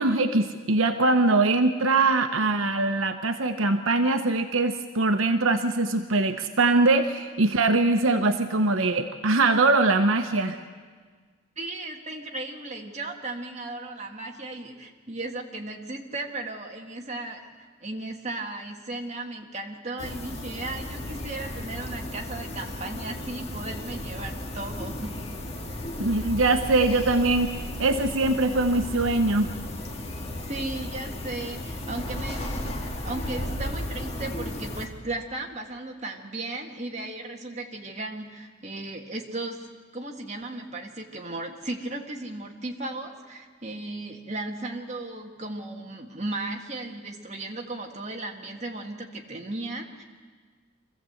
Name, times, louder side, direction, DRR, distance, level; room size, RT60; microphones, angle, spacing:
voice 1, 0.0-10.6 26.0-27.5 27.8-29.5, right 3 dB, 75° right, 7 dB, 1.0 m, -22 dB
voice 2, 11.6-17.5 17.8-25.2 30.5-39.7 39.9-50.0, right 2 dB, 30° right, 1 dB, 1.8 m, -36 dB
sound 1, 20.0-34.9, left 1 dB, 30° left, 1.8 m, -35 dB
24.5 x 15.0 x 7.9 m, 1.5 s
head